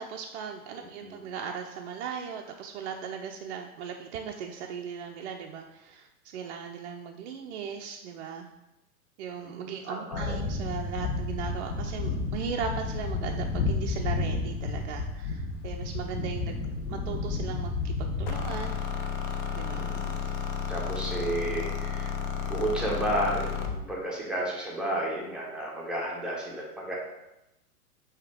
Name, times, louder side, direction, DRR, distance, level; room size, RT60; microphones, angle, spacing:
voice 1, 0.0-8.5 9.2-16.6 16.9-18.8 19.5-19.9, right 7 dB, 50° right, 2 dB, 0.4 m, -38 dB
voice 2, 0.8-1.2 9.4-10.4 19.7-20.2 20.7-22.1 22.5-27.0, right 1 dB, ahead, -5 dB, 0.7 m, -32 dB
sound 1, 10.1-18.8, left 3 dB, 60° left, 1.0 m, -31 dB
sound 2, 18.3-23.8, left 7 dB, 35° left, 0.4 m, -32 dB
4.9 x 2.8 x 3.4 m, 0.93 s
hypercardioid pair, 105°, 46 cm